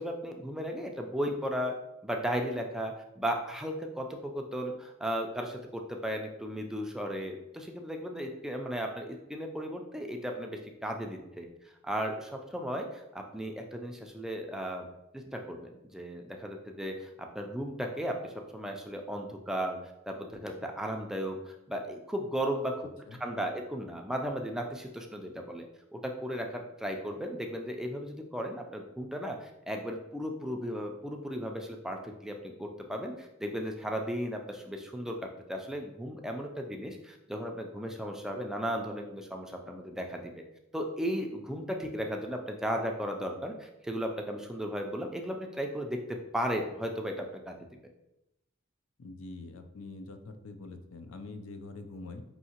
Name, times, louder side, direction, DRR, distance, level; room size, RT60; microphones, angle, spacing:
voice 1, 0.0-1.8 2.0-11.5 11.8-14.9 15.1-19.8 20.1-22.9 23.2-25.6 25.9-40.4 40.7-47.6, equal, 5° right, 2 dB, 0.3 m, -35 dB
voice 2, 49.0-52.2, left 3 dB, 80° left, 7 dB, 0.5 m, -44 dB
5.4 x 2.8 x 2.8 m, 0.89 s
head